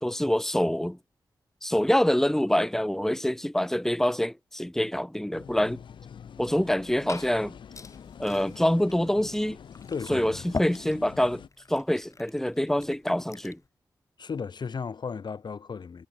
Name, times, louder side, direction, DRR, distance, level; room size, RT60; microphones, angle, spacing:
voice 1, 0.0-1.0 1.6-5.8 6.4-7.6 8.2-9.6 10.1-11.4 11.7-13.6, left 1 dB, 5° left, 2.0 m, -25 dB
sound 1, 5.3-11.5, left 7 dB, 85° left, 3.7 m, -46 dB
Glass / Fill (with liquid), 6.6-13.7, left 3 dB, 40° left, 7.9 m, -42 dB
voice 2, 9.9-10.4 14.2-16.1, left 5 dB, 65° left, 3.3 m, -35 dB
cardioid pair, 60°, 8 cm